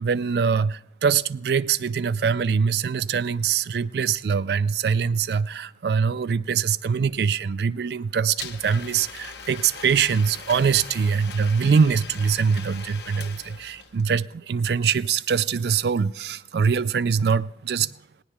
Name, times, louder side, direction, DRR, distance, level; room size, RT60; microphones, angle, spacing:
voice 1, 0.0-18.0, right 6 dB, 65° right, 0.4 m, -23 dB
Domestic sounds home sounds, 8.4-14.0, left 5 dB, 70° left, 1.0 m, -40 dB
19.5 x 18.0 x 2.3 m
head